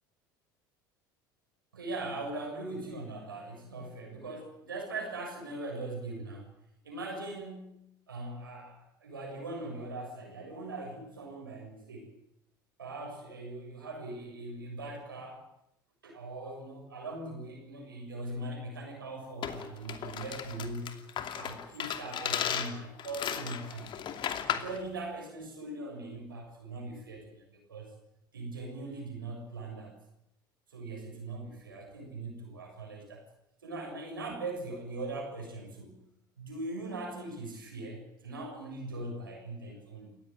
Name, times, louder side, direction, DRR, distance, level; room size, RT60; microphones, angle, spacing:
voice 1, 1.7-6.5 6.8-12.1 12.8-15.5 16.0-21.1 21.3-24.0 24.5-27.9 28.3-30.0 30.7-33.2 33.6-36.0 36.4-40.1, right 2 dB, 90° right, 1 dB, 7.0 m, -40 dB
sound 1, 19.4-24.8, left 9 dB, 45° left, 2.7 m, -35 dB
29.5 x 15.0 x 9.0 m, 0.81 s
hypercardioid pair, 70°, 11 cm